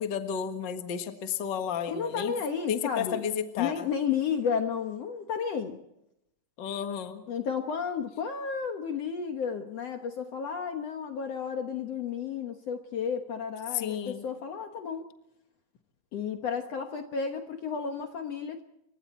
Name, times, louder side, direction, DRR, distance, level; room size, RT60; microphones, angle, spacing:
voice 1, 0.0-2.3 2.7-3.9 6.6-7.2 13.7-14.2, left 8 dB, 45° left, 6 dB, 1.8 m, -32 dB
voice 2, 1.9-3.2 3.6-5.8 7.3-15.1 16.1-18.6, left 6 dB, 60° left, 5 dB, 2.0 m, -32 dB
29.5 x 24.5 x 4.3 m, 0.83 s
omnidirectional pair, 3.8 m